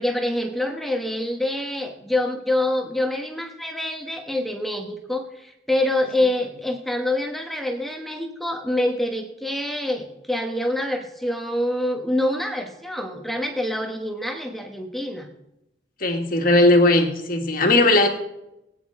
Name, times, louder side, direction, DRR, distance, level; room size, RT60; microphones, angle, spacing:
voice 1, 0.0-15.3, left 1 dB, ahead, 3 dB, 1.2 m, -26 dB
voice 2, 16.0-18.1, left 2 dB, 50° left, 4 dB, 1.8 m, -18 dB
21.5 x 9.4 x 3.7 m, 0.88 s
head